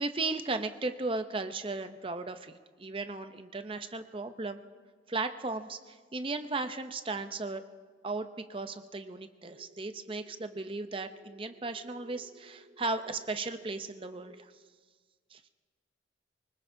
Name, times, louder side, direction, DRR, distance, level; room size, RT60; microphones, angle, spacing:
voice 1, 0.0-4.6 5.1-7.6 8.0-14.5 15.3-15.4, right 3 dB, 30° right, 9 dB, 0.6 m, -36 dB
sound 1, 9.4-14.4, right 2 dB, 65° right, 4.8 m, -56 dB
24.5 x 19.5 x 2.7 m, 1.5 s
head